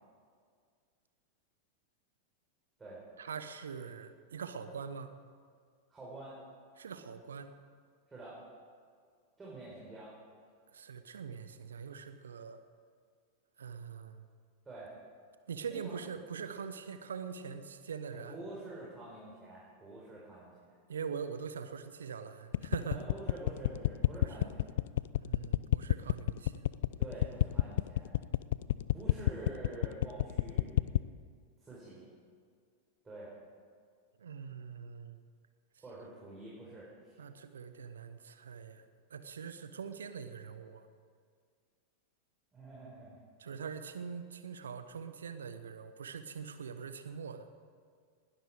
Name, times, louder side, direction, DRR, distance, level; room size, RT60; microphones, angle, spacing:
voice 1, 3.2-5.1 6.8-7.6 10.7-12.6 13.6-14.2 15.5-18.4 20.9-23.0 24.2-24.5 25.2-26.7 34.2-35.2 37.2-38.8 39.1-40.9 43.4-47.5, right 6 dB, 70° right, 10 dB, 1.0 m, -43 dB
voice 2, 5.9-6.4 8.1-8.4 9.4-10.1 14.6-14.9 15.7-15.9 18.1-20.7 22.9-24.6 27.0-28.1 28.9-31.1 31.6-32.1 33.0-33.3 35.8-37.2 42.5-43.2, right 2 dB, 15° right, -6 dB, 4.5 m, -47 dB
sound 1, 22.5-31.1, left 14 dB, 60° left, 0.4 m, -28 dB
20.0 x 13.0 x 4.9 m, 2.1 s
figure-of-eight pair, 90°, 0 cm